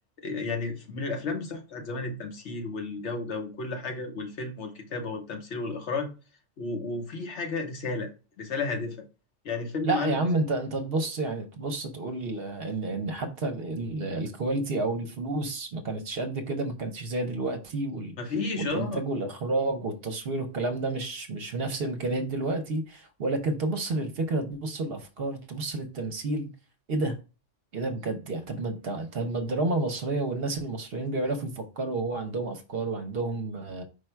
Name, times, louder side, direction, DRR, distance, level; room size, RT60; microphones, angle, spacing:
voice 1, 0.2-6.1 6.6-8.1 8.4-9.0 9.4-10.1 18.2-19.0, left 3 dB, 65° left, 1.1 m, -32 dB
voice 2, 9.8-18.1 18.6-26.5 26.9-27.1 27.7-33.8, right 2 dB, 60° right, 0.8 m, -30 dB
5.0 x 2.2 x 4.3 m
omnidirectional pair, 1.3 m